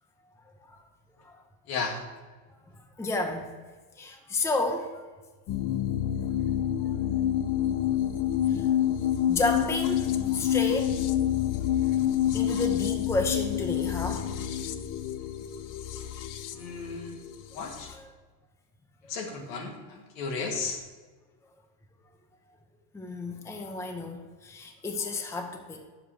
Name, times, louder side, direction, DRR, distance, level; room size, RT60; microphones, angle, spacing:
voice 1, 3.0-3.5 4.0-5.0 8.5-8.6 9.3-11.0 12.3-14.3 17.9-18.1 22.9-25.9, left 2 dB, 5° left, 3 dB, 0.7 m, -31 dB
sound 1, 5.5-17.9, left 11 dB, 40° left, 0.7 m, -28 dB
voice 2, 16.6-17.2 17.5-17.9 19.1-20.8, left 4 dB, 85° left, 2 dB, 2.2 m, -34 dB
9.7 x 7.4 x 4.8 m, 1.3 s
supercardioid pair, 130°, 49 cm